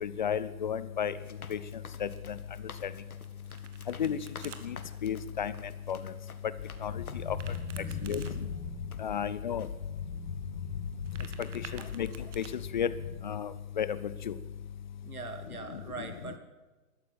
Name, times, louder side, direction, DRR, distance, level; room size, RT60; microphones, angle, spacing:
voice 1, 0.0-1.1 1.5-1.6 2.0-2.1 2.8-2.9 4.0-4.2 4.6-4.8 5.0-5.5 5.9-6.1 6.8-7.4 8.0-8.5 9.0-9.7 11.7-12.1 12.4-12.9 13.2-14.3 16.0-16.4, left 8 dB, 35° left, 16 dB, 0.5 m, -33 dB
sound 1, 1.2-7.7 8.3-8.4 8.9-9.3 9.6-9.8, left 5 dB, 80° left, 1.7 m, -51 dB
Domestic sounds home sounds, 3.2-4.6 7.2-8.3 10.9-12.5, right 7 dB, 55° right, 1.9 m, -49 dB
sound 2, 6.6-13.2, left 6 dB, 60° left, 5.3 m, -39 dB
voice 2, 15.0-16.4, right 4 dB, 85° right, 6 dB, 2.7 m, -42 dB
16.5 x 13.0 x 5.8 m, 1.2 s
figure-of-eight pair, 135°, 43 cm